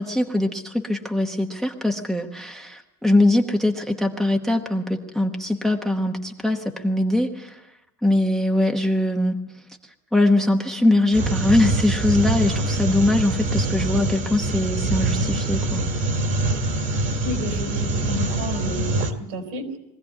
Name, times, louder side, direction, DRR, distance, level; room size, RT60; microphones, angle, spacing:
voice 1, 0.0-7.6 8.0-9.4 10.1-15.8, left 1 dB, ahead, 3 dB, 1.0 m, -22 dB
sound 1, 11.1-19.1, right 2 dB, 30° right, 1.9 m, -24 dB
voice 2, 17.2-19.0 19.3-19.7, equal, 70° right, 5 dB, 5.0 m, -31 dB
23.0 x 16.0 x 9.7 m, 0.91 s
cardioid pair, 180°, 38 cm